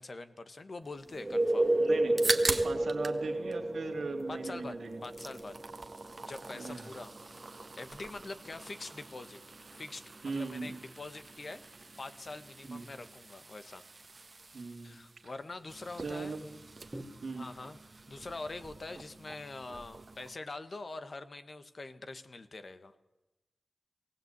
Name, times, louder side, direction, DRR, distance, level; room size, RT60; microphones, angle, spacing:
voice 1, 0.0-1.7 4.3-5.6 6.2-7.4 7.8-9.4 9.7-11.6 12.0-13.8 14.8-16.4 17.4-17.8 18.1-22.9, left 3 dB, 55° left, 10 dB, 1.4 m, -44 dB
sound 1, 1.1-12.7 16.9-17.0, right 1 dB, 20° right, 2.0 m, -34 dB
voice 2, 1.8-2.2 2.5-5.0 6.5-6.9 10.2-10.8 12.6-12.9 14.5-15.0 16.0-16.4 17.2-17.5, right 4 dB, 80° right, 4 dB, 2.7 m, -39 dB
sound 2, 1.9-3.2 3.5-4.5 4.8-20.4, right 3 dB, 50° right, 1.4 m, -42 dB
18.5 x 17.5 x 8.2 m, 1.0 s
cardioid pair, 50°, 0 cm